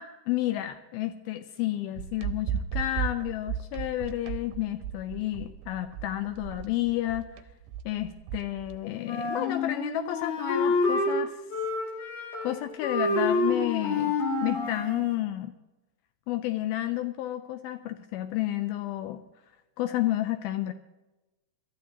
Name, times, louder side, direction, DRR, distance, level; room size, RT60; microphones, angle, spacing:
voice 1, 0.0-7.3 7.9-11.4 12.4-15.6 16.3-19.2 19.8-20.7, left 14 dB, 80° left, 9 dB, 2.3 m, -31 dB
sound 1, 2.0-8.8, right 9 dB, 90° right, 2.9 m, -35 dB
Wind instrument woodwind instrument, 9.0-11.1 11.5-12.6 12.8-15.0, left 3 dB, 55° left, 3.9 m, -28 dB
23.0 x 13.0 x 2.9 m, 1.0 s
omnidirectional pair, 4.8 m